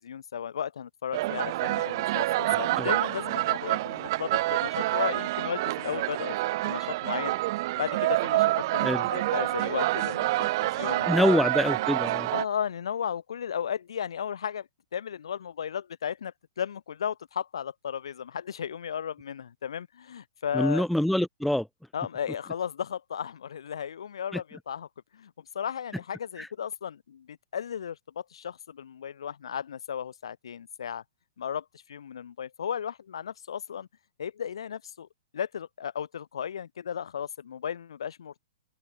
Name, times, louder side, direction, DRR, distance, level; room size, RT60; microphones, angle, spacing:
voice 1, 0.0-7.3 7.8-11.4 12.3-20.9 21.9-24.9 25.1-31.0 31.4-33.9 34.2-35.1 35.3-38.4, left 8 dB, 60° left, 6.3 m, -35 dB
sound 1, 1.1-12.5, right 18 dB, 40° right, 1.3 m, -27 dB
voice 2, 11.1-12.3 20.5-21.7 24.3-24.4 26.4-26.5, left 1 dB, ahead, 1.2 m, -25 dB
open air
figure-of-eight pair, 110°, 3 cm